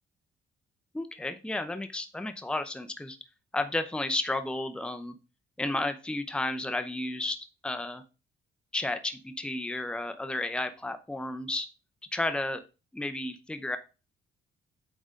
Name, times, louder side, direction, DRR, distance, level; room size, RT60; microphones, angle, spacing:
voice 1, 0.9-3.2 3.5-5.1 5.6-7.4 7.6-8.0 8.7-11.7 12.1-12.6 12.9-13.8, left 2 dB, 5° left, 9 dB, 0.7 m, -32 dB
9.0 x 3.9 x 3.8 m, 0.32 s
cardioid pair, 90°, 20 cm